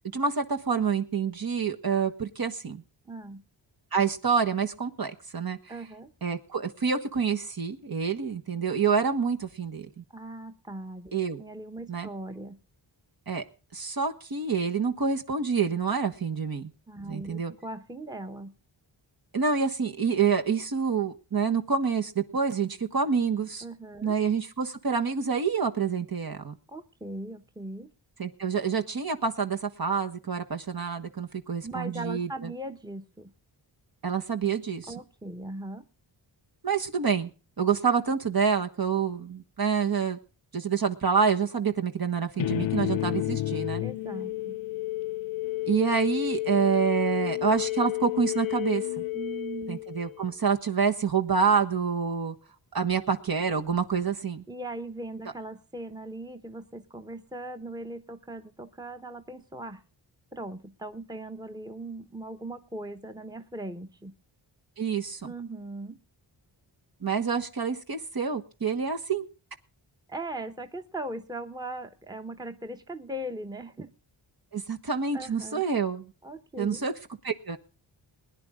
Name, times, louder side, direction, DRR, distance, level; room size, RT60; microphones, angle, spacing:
voice 1, 0.1-2.8 3.9-5.6 6.2-10.0 11.1-11.4 11.9-12.1 13.3-13.4 13.7-16.7 17.1-17.5 19.3-23.6 24.0-26.6 28.2-32.5 34.0-34.9 36.6-37.3 37.6-40.2 40.5-43.8 45.7-49.0 49.7-52.3 52.7-54.4 64.8-65.2 67.0-69.2 74.5-76.1 76.6-76.9 77.2-77.6, right 6 dB, 50° right, 1.4 m, -27 dB
voice 2, 3.0-3.4 5.7-6.1 10.1-12.6 16.9-18.5 23.6-24.1 26.7-27.9 31.6-33.3 34.9-35.8 43.8-44.6 49.1-49.8 54.5-59.8 60.3-64.1 65.2-66.0 70.1-73.9 75.1-75.7 76.2-76.8, right 1 dB, 10° right, 1.1 m, -39 dB
sound 1, 42.4-50.3, left 16 dB, 75° left, 0.6 m, -31 dB
21.0 x 10.5 x 3.7 m
wide cardioid pair, 85°, 47 cm